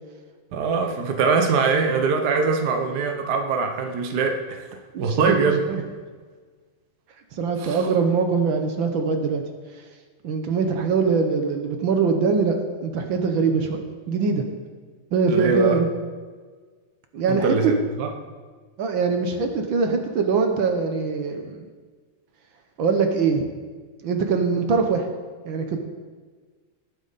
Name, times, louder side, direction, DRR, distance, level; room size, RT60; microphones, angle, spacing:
voice 1, 0.5-4.6 5.0-5.6 7.6-7.8 15.3-15.8 17.3-18.1, right 4 dB, 90° right, 4 dB, 0.8 m, -22 dB
voice 2, 4.9-5.8 7.3-9.4 10.2-14.4 15.1-15.9 17.1-17.7 18.8-21.7 22.8-23.5 24.0-25.1 25.4-25.8, right 5 dB, 65° right, 5 dB, 1.2 m, -23 dB
18.0 x 9.1 x 4.1 m, 1.5 s
omnidirectional pair, 3.4 m